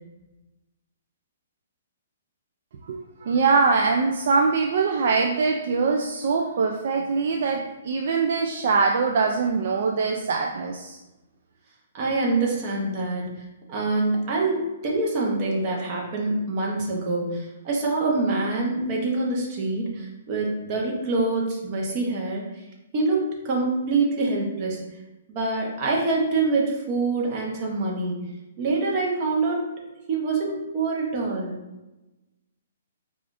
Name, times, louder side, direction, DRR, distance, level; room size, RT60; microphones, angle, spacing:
voice 1, 2.9-11.0, right 4 dB, 60° right, 2 dB, 0.3 m, -23 dB
voice 2, 11.9-13.3 13.7-22.5 22.9-24.8 25.3-28.2 28.6-29.8 30.1-31.5, right 3 dB, 35° right, -2 dB, 0.9 m, -25 dB
4.7 x 2.4 x 2.5 m, 1.0 s
hypercardioid pair, 155°, 0 cm